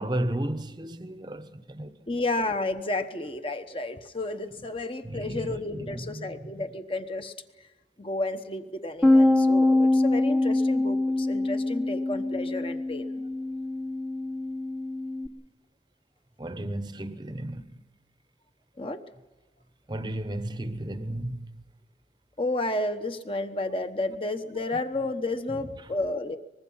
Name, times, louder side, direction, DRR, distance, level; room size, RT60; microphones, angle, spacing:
voice 1, 0.0-2.0 5.0-6.6 16.4-17.8 19.9-21.6, right 1 dB, 25° right, 0.9 m, -34 dB
voice 2, 2.1-7.7 8.0-13.2 18.8-19.0 22.4-26.4, left 2 dB, 30° left, 1.1 m, -32 dB
Bass guitar, 9.0-15.3, left 2 dB, 5° left, 1.0 m, -24 dB
24.0 x 20.5 x 5.6 m
head